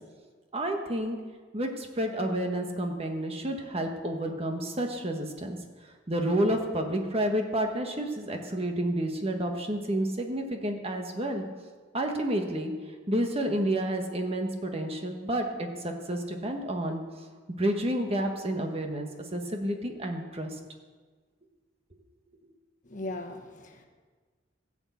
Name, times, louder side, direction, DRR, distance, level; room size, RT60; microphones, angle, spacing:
voice 1, 0.5-1.2 1.5-5.6 6.1-11.4 11.9-12.7 13.1-17.0 17.6-20.5, right 1 dB, 30° right, 4 dB, 1.4 m, -30 dB
voice 2, 22.8-23.9, left 2 dB, 45° left, 5 dB, 1.3 m, -38 dB
16.0 x 6.2 x 8.4 m, 1.4 s
head